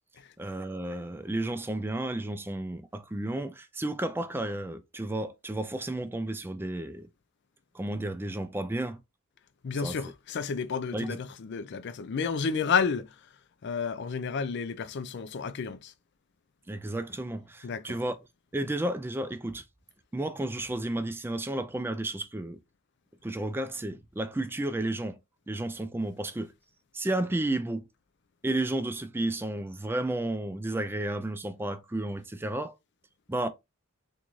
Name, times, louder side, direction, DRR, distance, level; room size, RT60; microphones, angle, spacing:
voice 1, 0.4-7.1 7.7-9.0 9.8-10.0 10.9-11.2 16.7-18.2 18.5-19.6 20.1-22.6 23.2-25.2 25.5-26.5 26.9-27.8 28.4-32.7 33.3-33.5, right 1 dB, 10° right, 0.3 m, -32 dB
voice 2, 9.6-13.2 13.6-15.9 17.6-18.0, left 5 dB, 55° left, 0.4 m, -31 dB
3.6 x 2.6 x 3.0 m
head